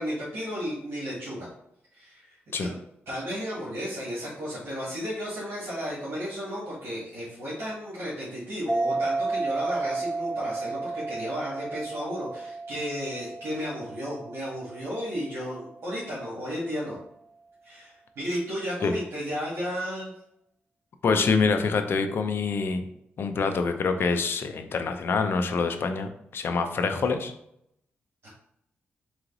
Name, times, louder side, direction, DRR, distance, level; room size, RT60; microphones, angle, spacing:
voice 1, 0.0-1.5 1.9-2.7 3.1-17.0 17.6-20.1 28.2-28.3, equal, 75° right, -8 dB, 1.8 m, -33 dB
sound 1, 8.7-15.7, right 3 dB, 5° left, 0.5 m, -32 dB
voice 2, 21.0-22.8 23.2-27.3, left 4 dB, 60° left, 7 dB, 0.5 m, -26 dB
3.9 x 3.1 x 3.8 m, 0.76 s
cardioid pair, 100°, 4 cm